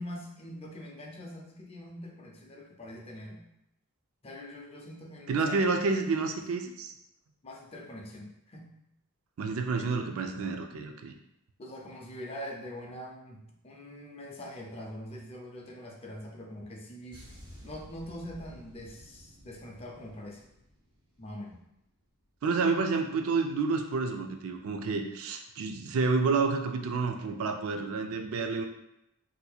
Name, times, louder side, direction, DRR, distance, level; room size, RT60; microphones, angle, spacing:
voice 1, 0.0-3.5 4.2-5.7 7.4-8.7 11.6-17.3 17.6-20.4 21.2-21.6, left 1 dB, 25° left, 0 dB, 0.5 m, -43 dB
voice 2, 5.3-6.9 9.4-11.1 22.4-28.7, right 4 dB, 75° right, 5 dB, 0.4 m, -29 dB
sound 1, 17.1-21.7 21.9-22.2, equal, 20° right, 0.8 m, -52 dB
4.2 x 2.7 x 2.3 m, 0.83 s
head